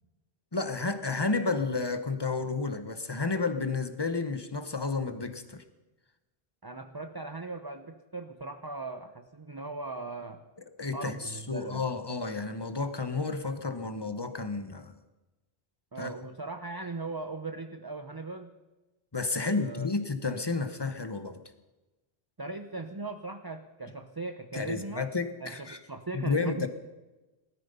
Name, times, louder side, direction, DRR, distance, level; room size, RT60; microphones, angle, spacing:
voice 1, 0.5-5.6 10.8-14.9 16.0-16.1 19.1-21.4 24.5-25.8 26.1-26.7, left 3 dB, 25° left, 10 dB, 1.1 m, -31 dB
voice 2, 6.6-10.4 10.9-11.9 15.9-18.5 19.3-19.9 22.4-25.1 25.4-26.7, right 3 dB, 25° right, 7 dB, 0.7 m, -39 dB
18.5 x 13.5 x 5.5 m, 1.1 s
omnidirectional pair, 1.1 m